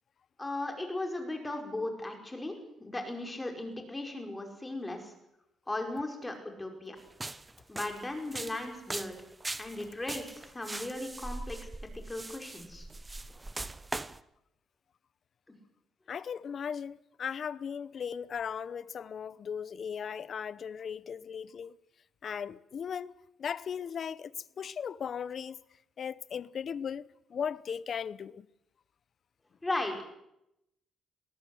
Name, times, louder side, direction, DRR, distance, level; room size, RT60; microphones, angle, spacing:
voice 1, 0.4-5.1 5.7-7.0 7.7-9.2 9.6-11.7 12.1-12.9 15.5-15.6 29.6-30.1, left 2 dB, 15° left, 5.2 m, -37 dB
sound 1, 7.1-14.2, right 2 dB, 15° right, 0.8 m, -41 dB
voice 2, 16.1-21.7 22.2-25.6 26.0-28.5, left 7 dB, 55° left, 0.8 m, -37 dB
20.0 x 18.0 x 7.9 m
cardioid pair, 90°, 0 cm